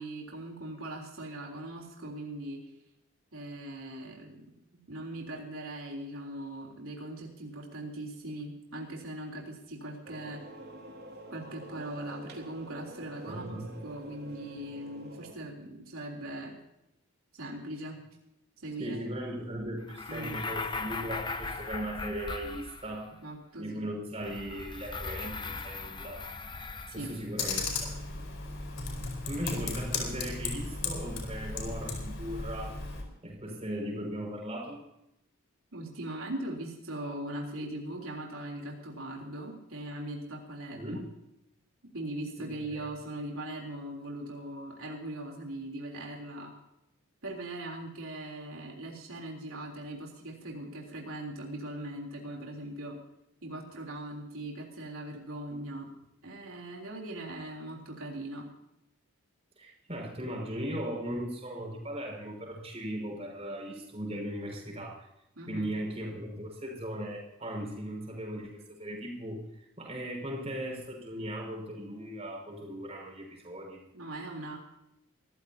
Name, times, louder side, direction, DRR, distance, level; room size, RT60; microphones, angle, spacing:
voice 1, 0.0-2.7 3.3-10.4 11.3-16.5 17.3-18.0 18.6-19.0 20.1-20.4 23.2-23.8 26.9-27.1 35.7-41.0 41.9-46.5 47.2-53.0 53.4-55.9 56.2-58.5 65.3-65.7 73.9-74.6, right 1 dB, 90° right, -1 dB, 3.6 m, -40 dB
sound 1, 10.0-15.3, right 1 dB, 50° right, 3.5 m, -47 dB
voice 2, 13.3-13.7 18.8-23.1 23.6-26.2 26.9-27.9 29.2-34.8 40.7-41.1 42.4-42.8 59.6-65.1 65.5-69.4 69.8-73.8, equal, 30° right, 0 dB, 5.8 m, -38 dB
sound 2, 19.9-23.1 24.2-27.4, left 3 dB, 20° left, 0.8 m, -39 dB
Computer keyboard, 27.4-33.0, left 4 dB, 60° left, 4.6 m, -35 dB
24.5 x 15.0 x 2.9 m, 0.83 s
head